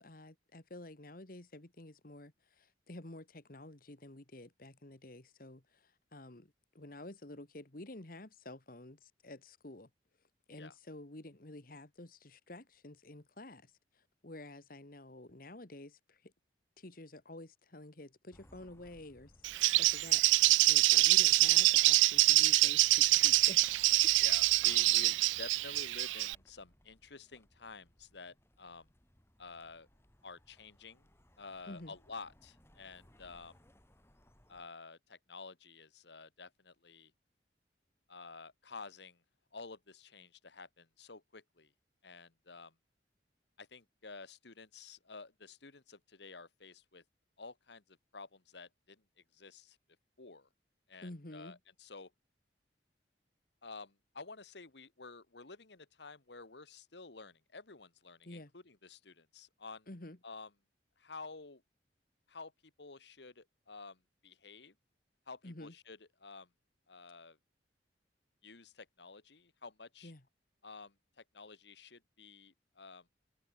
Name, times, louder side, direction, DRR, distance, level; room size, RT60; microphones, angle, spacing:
voice 1, 0.0-9.9 10.5-13.7 14.2-16.3 16.8-19.3 19.8-23.7 24.0-24.1 31.7-31.9 51.0-51.6 58.2-58.5 59.9-60.2 65.4-65.7 70.0-70.2, left 1 dB, 50° left, 1.8 m, -50 dB
sound 1, 18.3-34.7, equal, 15° left, 3.6 m, -64 dB
Bird, 19.4-26.3, right 19 dB, 90° right, 0.3 m, -26 dB
voice 2, 24.2-28.9 29.4-29.9 30.2-31.1 31.4-33.6 34.5-37.1 38.1-39.2 39.5-41.7 42.0-42.7 43.6-47.0 47.4-49.0 49.3-49.8 50.2-50.5 50.9-52.1 53.6-59.9 60.2-60.5 61.0-61.6 62.3-62.5 62.8-64.7 65.3-66.5 66.9-67.4 68.4-70.1 70.6-73.1, left 4 dB, 70° left, 1.6 m, -51 dB
head